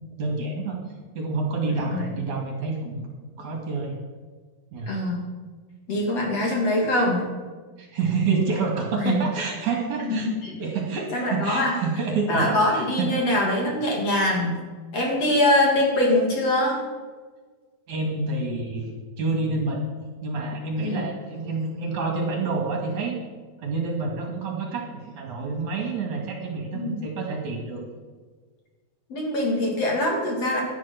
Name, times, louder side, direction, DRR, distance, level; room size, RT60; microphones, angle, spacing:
voice 1, 0.2-0.8 1.2-3.1 3.4-3.9 4.7-5.0 7.8-10.3 10.6-13.1 17.9-19.8 20.2-23.2 23.6-27.9, right 4 dB, 50° right, 1 dB, 3.5 m, -28 dB
voice 2, 1.7-2.1 4.9-5.3 5.9-7.2 9.0-9.2 10.0-10.6 11.1-11.8 12.3-14.6 14.9-16.8 20.8-21.0 26.7-27.0 29.1-30.6, left 1 dB, 45° left, -1 dB, 3.6 m, -23 dB
18.0 x 11.5 x 6.0 m, 1.4 s
omnidirectional pair, 4.5 m